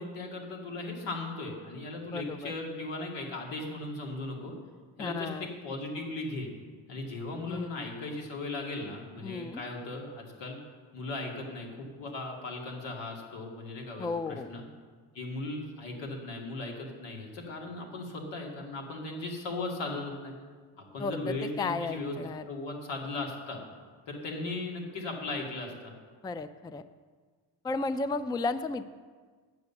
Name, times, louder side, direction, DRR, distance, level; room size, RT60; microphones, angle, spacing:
voice 1, 0.0-4.6 5.0-6.5 6.9-10.6 10.9-14.6 15.1-20.3 20.8-22.1 22.5-23.6 24.1-25.9, left 2 dB, 90° left, 0 dB, 2.4 m, -37 dB
voice 2, 2.1-2.5 5.0-5.5 7.5-7.9 9.2-9.6 14.0-14.5 21.0-22.4 26.2-26.8 27.6-28.9, left 3 dB, 10° left, 13 dB, 0.3 m, -34 dB
9.4 x 7.8 x 7.1 m, 1.5 s
cardioid pair, 100°, 43 cm